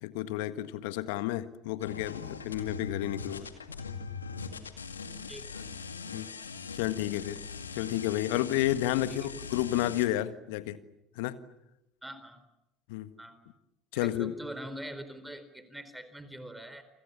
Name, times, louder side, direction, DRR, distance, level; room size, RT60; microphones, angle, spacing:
voice 1, 0.0-3.5 6.1-6.3 6.7-7.4 7.7-10.8 11.2-11.4 12.9-13.1 13.9-14.3, left 14 dB, 70° left, 12 dB, 1.5 m, -31 dB
sound 1, 1.8-10.1, left 5 dB, 90° left, 2.2 m, -41 dB
voice 2, 5.3-5.7 9.1-9.3 12.0-12.4 13.2-13.4 13.9-16.8, right 1 dB, 5° right, 10 dB, 4.2 m, -43 dB
29.0 x 26.5 x 7.1 m, 0.89 s
hypercardioid pair, 65°, 0 cm